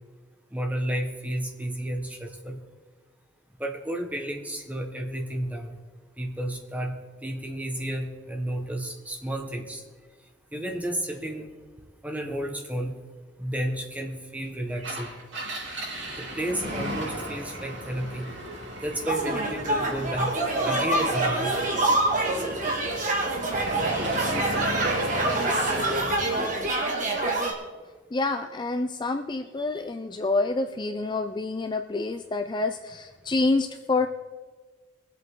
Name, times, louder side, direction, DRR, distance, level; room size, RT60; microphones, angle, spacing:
voice 1, 0.5-2.6 3.6-5.8 6.2-9.8 10.5-11.5 12.0-12.9 13.4-15.1 16.2-18.3 18.8-20.3 20.6-21.6 29.6-29.8, right 1 dB, 10° right, 3 dB, 1.4 m, -32 dB
Engine, 14.7-26.2, right 1 dB, 75° right, 4.6 m, -34 dB
sound 1, 19.1-27.5, right 2 dB, 45° right, 2.3 m, -26 dB
voice 2, 28.1-34.1, left 3 dB, 25° left, 7 dB, 0.4 m, -27 dB
22.0 x 8.2 x 3.8 m, 1.4 s
head